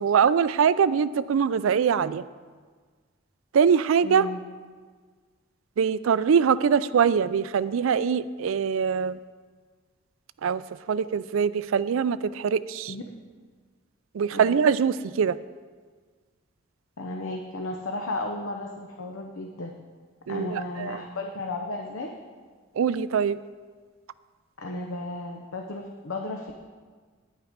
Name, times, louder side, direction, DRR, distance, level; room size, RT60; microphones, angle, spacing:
voice 1, 0.0-2.2 3.5-4.3 5.8-9.2 10.4-10.6 10.9-12.9 14.1-15.4 20.3-21.0 22.8-23.4, right 7 dB, 80° right, 16 dB, 0.4 m, -23 dB
voice 2, 4.0-4.4 12.9-13.0 14.3-14.6 17.0-19.7 20.3-22.1 24.6-26.5, left 2 dB, 85° left, 2 dB, 0.8 m, -34 dB
9.8 x 9.0 x 5.1 m, 1.5 s
head